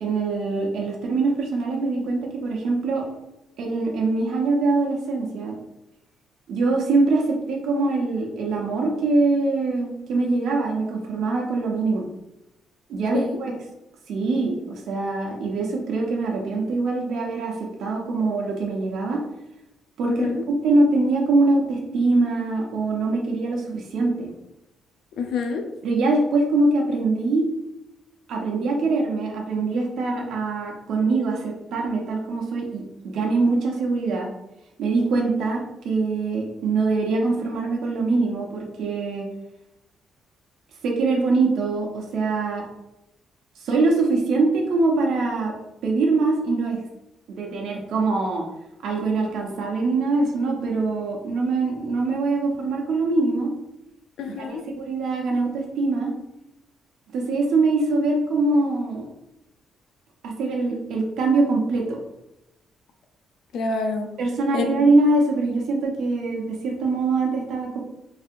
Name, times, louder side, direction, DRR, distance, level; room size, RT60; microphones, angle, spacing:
voice 1, 0.0-3.0 3.6-5.5 6.5-12.1 12.9-13.5 14.1-17.5 17.8-19.2 20.0-20.3 20.6-24.3 25.8-27.5 28.3-34.3 34.8-39.3 40.8-42.6 43.6-45.5 45.8-46.8 47.3-48.4 48.8-53.5 54.2-56.1 57.1-59.1 60.2-62.0 64.2-67.8, right 3 dB, 75° right, 0 dB, 0.8 m, -23 dB
voice 2, 20.1-20.4 25.2-25.6 54.2-54.6 63.5-64.1 64.5-64.6, left 4 dB, 80° left, 5 dB, 0.5 m, -27 dB
4.1 x 2.7 x 2.5 m, 0.90 s
cardioid pair, 90°, 0 cm